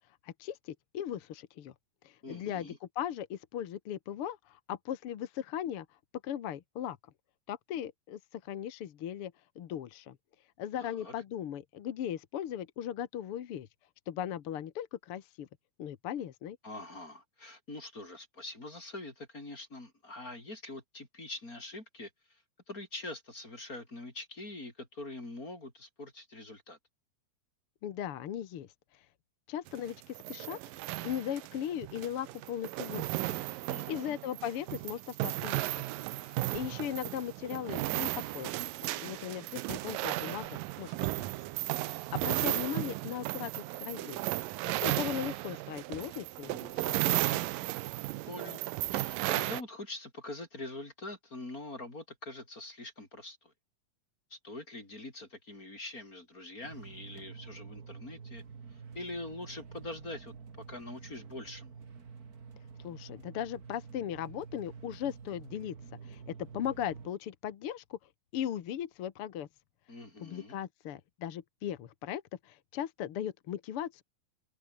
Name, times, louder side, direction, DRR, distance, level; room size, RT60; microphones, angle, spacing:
voice 1, 0.2-1.7 2.0-5.9 6.2-7.0 7.5-10.2 10.6-13.7 14.1-15.5 15.8-16.6 27.8-28.7 28.9-29.0 29.5-30.6 31.0-33.4 33.9-35.8 36.1-38.6 39.0-41.3 41.8-44.3 44.6-47.4 62.8-65.8 66.0-68.0 68.3-69.5 70.2-74.0, left 10 dB, 60° left, 1.6 m, -38 dB
voice 2, 2.2-2.8 10.8-11.1 16.6-26.8 33.7-34.2 48.3-48.6 48.9-53.5 54.3-58.4 58.7-61.7 69.9-70.5, left 2 dB, 25° left, 4.9 m, -44 dB
sound 1, 29.7-49.6, right 18 dB, 80° right, 2.4 m, -35 dB
sound 2, 56.6-67.1, right 5 dB, 35° right, 1.7 m, -48 dB
omnidirectional pair, 4.1 m